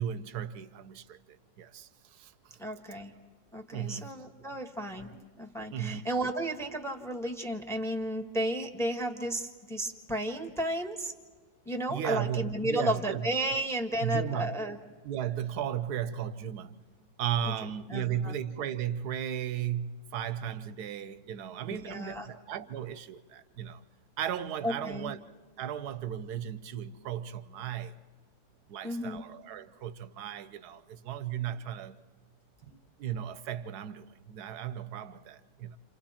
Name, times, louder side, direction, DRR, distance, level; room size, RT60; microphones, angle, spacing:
voice 1, 0.0-2.6 3.7-4.2 5.7-6.1 11.9-13.3 14.0-14.6 15.0-16.7 17.2-23.8 24.2-25.2 25.6-28.0 28.7-32.0 32.6-35.8, right 9 dB, 65° right, 1.3 m, -35 dB
voice 2, 2.6-3.1 3.5-5.1 5.4-11.1 11.6-14.8 17.9-18.4 21.7-22.3 24.6-25.1 28.8-29.2, right 1 dB, ahead, 1.3 m, -33 dB
30.0 x 27.5 x 4.4 m
omnidirectional pair, 2.0 m